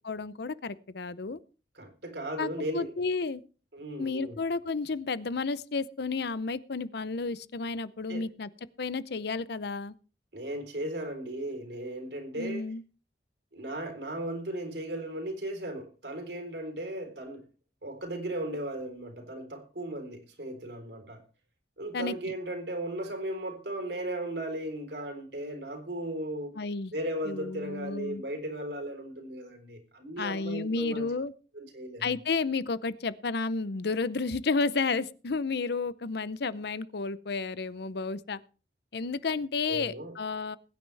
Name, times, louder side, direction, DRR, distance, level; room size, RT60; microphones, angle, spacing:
voice 1, 0.1-1.4 2.4-3.4 4.0-8.5 8.8-9.9 12.4-12.8 21.9-22.1 26.6-26.9 27.3-28.2 30.2-31.3 32.0-38.4 38.9-40.6, left 4 dB, 65° left, 0.7 m, -32 dB
voice 2, 1.7-2.9 3.7-4.4 8.1-8.3 10.3-12.7 13.5-17.4 17.8-21.2 21.8-26.5 26.9-31.1 31.5-32.1 39.7-40.2, right 1 dB, 70° right, 3.9 m, -36 dB
21.0 x 9.7 x 3.4 m
head